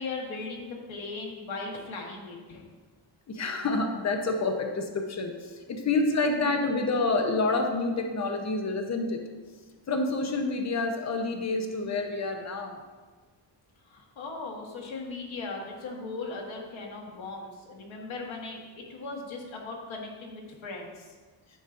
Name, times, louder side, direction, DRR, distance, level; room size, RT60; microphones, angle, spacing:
voice 1, 0.0-2.6 13.8-21.1, left 3 dB, 90° left, -1 dB, 1.5 m, -38 dB
voice 2, 3.3-9.2 9.9-12.8, left 3 dB, 35° left, 4 dB, 0.8 m, -28 dB
10.0 x 7.0 x 2.6 m, 1.4 s
wide cardioid pair, 170°, 46 cm